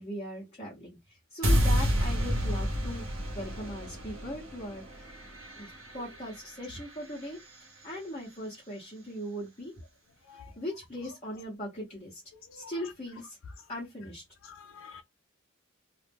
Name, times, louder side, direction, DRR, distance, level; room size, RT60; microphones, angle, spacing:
voice 1, 0.0-3.0 3.3-5.1 5.6-9.7 10.6-12.2 12.6-13.4 13.7-14.2, equal, 30° left, 1.0 m, -39 dB
sound 1, 1.4-7.6, equal, 70° right, 0.9 m, -30 dB
voice 2, 14.6-15.0, left 6 dB, 65° left, 0.5 m, -48 dB
2.4 x 2.0 x 3.4 m
head